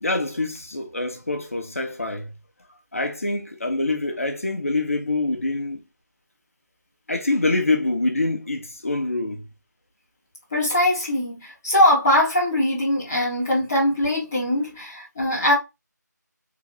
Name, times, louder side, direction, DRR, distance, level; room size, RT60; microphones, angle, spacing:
voice 1, 0.0-2.3 2.9-5.8 7.1-9.4, left 2 dB, 50° left, 0.9 m, -25 dB
voice 2, 10.5-15.5, left 1 dB, 10° left, 0.6 m, -21 dB
3.9 x 2.7 x 3.5 m
figure-of-eight pair, 165°, 10 cm